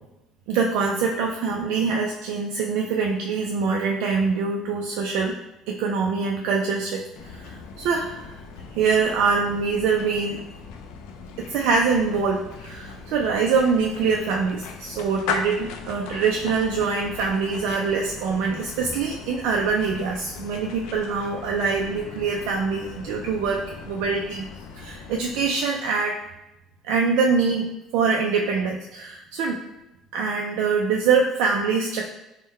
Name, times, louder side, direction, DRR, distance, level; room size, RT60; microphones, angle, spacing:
voice 1, 0.5-5.4 5.7-8.4 8.7-10.4 11.4-24.5 24.7-26.2 26.8-29.6 30.1-32.1, right 5 dB, 80° right, 1 dB, 0.3 m, -24 dB
sound 1, 7.2-25.8, left 5 dB, 85° left, 0.4 m, -38 dB
3.7 x 2.1 x 4.1 m, 0.94 s
cardioid pair, 120°, 0 cm